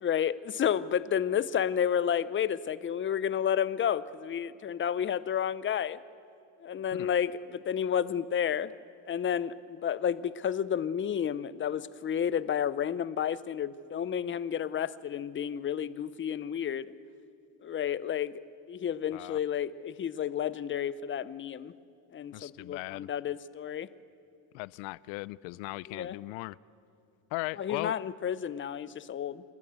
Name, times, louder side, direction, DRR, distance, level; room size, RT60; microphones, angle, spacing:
voice 1, 0.0-6.0 6.6-8.7 9.1-16.9 17.6-18.4 18.7-21.7 22.1-23.9 25.9-26.2 27.6-29.4, left 9 dB, 25° left, 17 dB, 0.6 m, -31 dB
voice 2, 22.3-23.1 24.5-26.6 27.3-27.9, left 23 dB, 85° left, 22 dB, 0.5 m, -38 dB
29.0 x 13.0 x 8.1 m, 2.6 s
cardioid pair, 110°, 45 cm